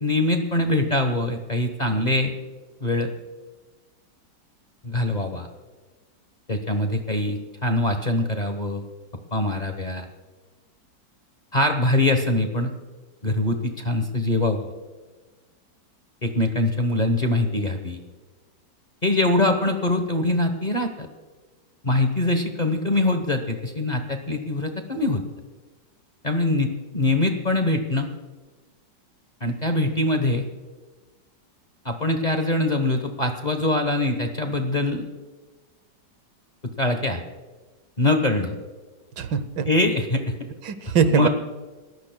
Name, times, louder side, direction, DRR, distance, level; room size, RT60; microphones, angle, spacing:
voice 1, 0.0-2.3 2.8-3.1 4.8-5.5 6.5-8.8 9.3-10.1 11.5-12.7 13.2-14.7 16.2-18.0 19.0-21.1 21.8-25.2 26.2-28.1 29.4-30.4 31.8-35.0 36.6-37.2 38.0-38.6 39.7-40.3 41.0-41.3, left 2 dB, 30° left, 5 dB, 0.9 m, -23 dB
voice 2, 39.2-39.7 40.7-41.3, right 7 dB, 80° right, 12 dB, 1.6 m, -22 dB
29.0 x 14.5 x 2.2 m, 1.3 s
omnidirectional pair, 1.9 m